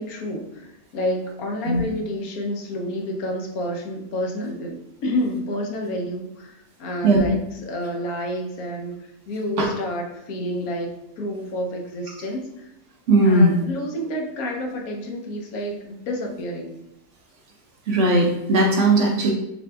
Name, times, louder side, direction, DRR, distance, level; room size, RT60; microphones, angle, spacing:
voice 1, 0.0-12.7 13.2-16.8, equal, 75° left, 2 dB, 1.1 m, -29 dB
voice 2, 13.1-13.6 17.9-19.3, right 2 dB, 60° right, 0 dB, 0.8 m, -17 dB
6.6 x 2.6 x 2.2 m, 0.88 s
omnidirectional pair, 1.6 m